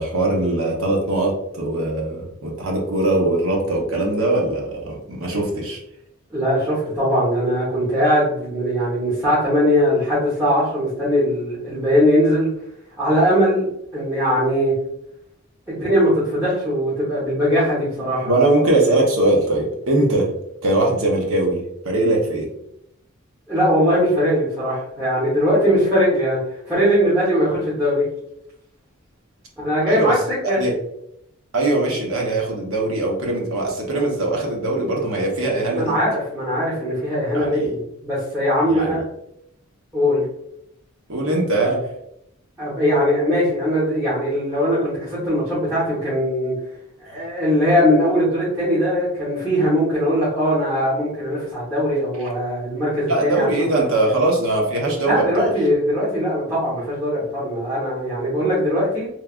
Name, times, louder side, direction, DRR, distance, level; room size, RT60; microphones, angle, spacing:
voice 1, 0.0-5.8 18.2-20.3 20.6-21.6 21.8-22.5 29.8-30.1 30.6-30.7 31.5-36.0 37.3-37.7 38.7-39.0 41.1-41.8 53.1-55.5, right 2 dB, 70° right, -1 dB, 0.8 m, -21 dB
voice 2, 6.3-12.5 13.0-14.7 15.7-18.4 23.5-26.4 26.7-28.1 29.6-30.2 30.5-30.6 35.7-39.0 39.9-40.2 42.6-46.5 47.0-53.6 55.0-59.1, equal, 10° right, -12 dB, 0.9 m, -20 dB
3.1 x 2.2 x 2.3 m, 0.79 s
head